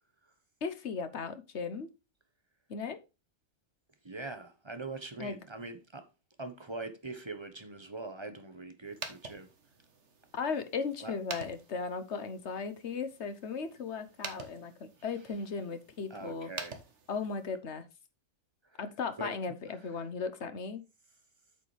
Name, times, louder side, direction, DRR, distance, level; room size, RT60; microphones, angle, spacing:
voice 1, 0.6-1.9 2.7-3.0 5.2-5.4 10.3-16.5 17.1-17.8 18.8-20.8, left 5 dB, 60° left, 1.3 m, -36 dB
voice 2, 4.0-6.1 6.4-9.5 11.0-11.1 16.1-16.8 19.2-19.4 19.7-19.9, right 3 dB, 20° right, 1.1 m, -42 dB
sound 1, 8.8-17.6, right 4 dB, 60° right, 1.6 m, -48 dB
8.5 x 6.8 x 3.3 m
omnidirectional pair, 1.3 m